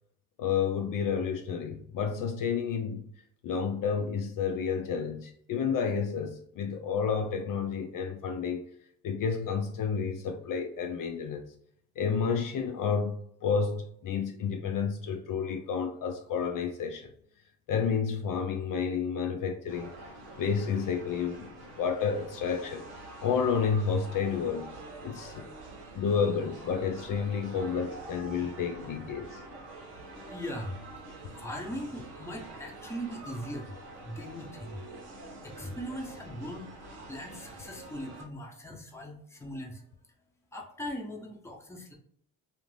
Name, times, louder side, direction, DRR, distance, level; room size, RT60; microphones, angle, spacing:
voice 1, 0.4-3.1 3.4-8.6 9.0-11.4 12.0-17.1 17.7-20.0 20.4-22.9 23.2-24.7 25.0-25.4 25.9-29.4, left 6 dB, 55° left, 0.5 m, -30 dB
sound 1, 19.7-38.2, right 2 dB, 85° right, 0.9 m, -46 dB
voice 2, 29.6-30.8 31.3-33.8 34.0-34.9 35.4-39.8 40.5-41.9, equal, 5° left, 0.6 m, -40 dB
2.5 x 2.5 x 3.2 m
cardioid pair, 100°, 39 cm